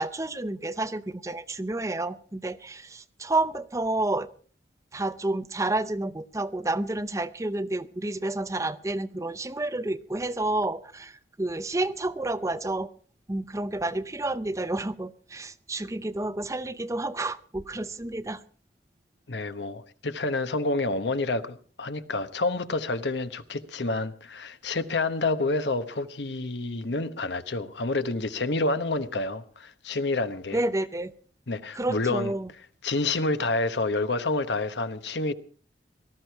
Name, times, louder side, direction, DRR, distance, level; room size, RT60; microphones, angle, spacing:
voice 1, 0.0-4.3 4.9-12.9 13.3-18.4 30.5-31.1 31.8-32.5, right 2 dB, 15° right, 0.6 m, -30 dB
voice 2, 19.3-30.6 31.5-32.3 32.8-35.3, left 3 dB, 75° left, 1.1 m, -28 dB
18.5 x 13.5 x 4.6 m
head